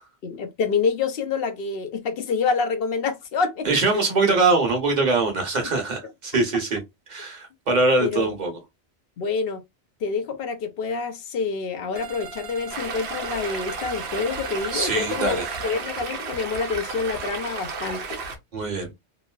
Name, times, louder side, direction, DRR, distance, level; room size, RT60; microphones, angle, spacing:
voice 1, 0.2-3.7 3.9-4.0 5.6-5.7 8.0-8.3 9.2-9.6 10.0-18.2, left 5 dB, 65° left, 0.7 m, -27 dB
voice 2, 3.6-6.8 7.1-8.6 14.7-15.5 18.5-18.9, right 3 dB, 45° right, 1.0 m, -22 dB
sound 1, 11.9-15.8, right 4 dB, 60° right, 0.7 m, -39 dB
Stream, 12.7-18.4, right 4 dB, 80° right, 1.0 m, -33 dB
3.0 x 2.6 x 2.3 m
omnidirectional pair, 1.1 m